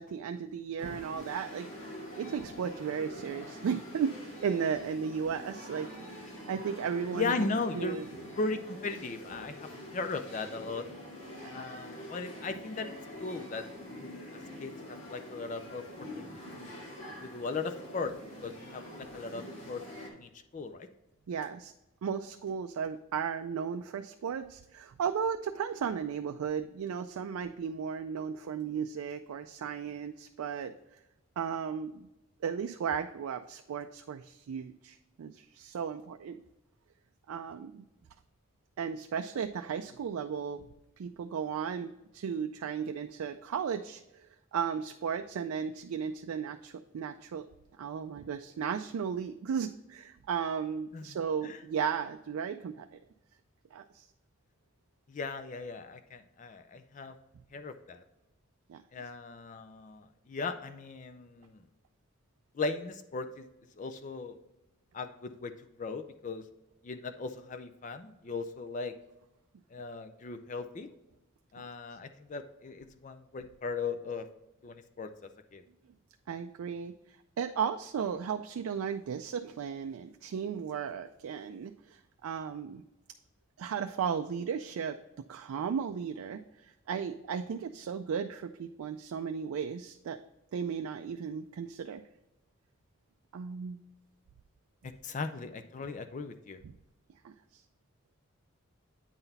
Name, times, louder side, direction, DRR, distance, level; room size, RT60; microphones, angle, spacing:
voice 1, 0.0-4.1 4.4-7.5 7.7-8.1 11.3-11.5 21.3-21.7 22.0-30.7 31.4-32.1 32.4-36.4 37.3-37.8 38.8-40.6 41.0-44.3 44.5-47.5 47.8-52.9 53.7-54.1 58.7-59.0 76.3-76.9 77.4-82.8 83.6-85.0 85.3-90.2 90.5-92.0 93.3-93.8 96.6-96.7 97.2-97.6, right 7 dB, 90° right, 7 dB, 0.3 m, -35 dB
sound 1, 0.8-20.1, left 1 dB, 70° left, 1.8 m, -46 dB
voice 2, 7.1-8.0 8.4-10.9 11.5-12.9 13.2-14.2 14.6-15.9 16.1-16.3 16.6-16.8 17.2-18.1 18.4-20.9 50.9-51.2 51.4-51.6 55.1-57.1 57.5-58.0 58.9-61.6 62.5-63.5 63.8-64.4 64.9-65.5 65.8-66.4 66.8-68.9 69.7-70.9 71.5-74.3 74.6-75.1 75.5-75.6 94.8-96.6, left 4 dB, 35° left, 8 dB, 0.4 m, -37 dB
8.9 x 3.9 x 4.1 m, 0.93 s
head